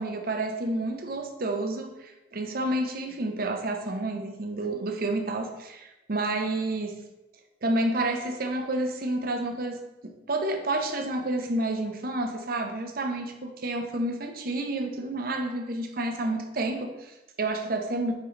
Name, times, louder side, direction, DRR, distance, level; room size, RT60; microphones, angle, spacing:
voice 1, 0.0-7.0 7.6-18.1, right 2 dB, 55° right, 5 dB, 0.7 m, -30 dB
8.1 x 3.8 x 3.2 m, 0.99 s
head